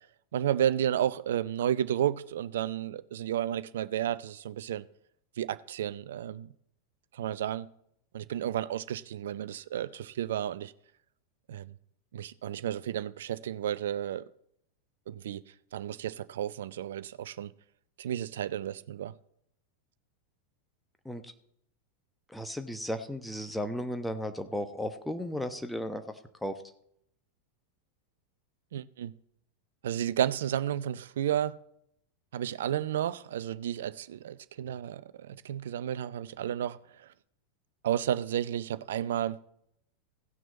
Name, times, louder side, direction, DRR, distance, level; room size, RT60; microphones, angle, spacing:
voice 1, 0.3-4.8 5.4-6.5 7.1-7.7 8.1-10.7 11.5-11.7 12.1-14.2 15.1-15.4 15.7-17.5 18.0-19.1 28.7-29.1 29.8-31.6 32.3-37.1 37.8-39.4, right 10 dB, 60° right, 0.4 m, -32 dB
voice 2, 22.3-26.0 26.4-26.5, equal, 5° left, 1.0 m, -35 dB
17.0 x 6.1 x 4.1 m
figure-of-eight pair, 90°, 0 cm